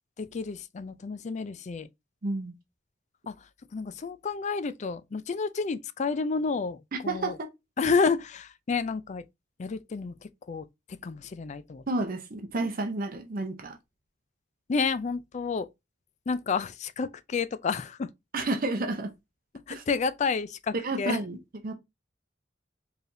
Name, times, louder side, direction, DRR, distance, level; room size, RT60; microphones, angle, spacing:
voice 1, 0.2-1.9 3.3-3.4 3.7-6.8 7.0-7.4 7.8-9.2 9.6-10.1 10.5-10.6 11.0-11.8 14.7-15.7 16.3-18.1 19.7-21.2, left 5 dB, 40° left, 0.4 m, -30 dB
voice 2, 2.2-2.5 6.9-7.5 11.9-13.8 18.3-19.1 19.7-19.8 20.7-21.4 21.6-21.7, right 2 dB, 50° right, 0.7 m, -30 dB
4.5 x 3.3 x 2.7 m
head